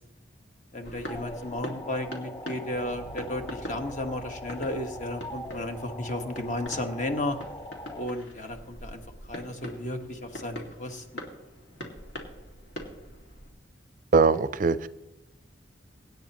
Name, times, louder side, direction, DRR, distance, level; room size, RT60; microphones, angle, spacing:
voice 1, 0.7-7.4 8.0-11.2, left 1 dB, 45° left, 1.4 m, -34 dB
sound 1, 0.8-13.5, equal, 80° left, 2.2 m, -44 dB
sound 2, 1.1-8.1, left 1 dB, 15° left, 0.7 m, -42 dB
sound 3, 2.6-11.6, right 1 dB, 60° left, 4.6 m, -52 dB
voice 2, 14.1-14.9, right 4 dB, 50° right, 0.4 m, -21 dB
24.0 x 9.5 x 3.0 m
head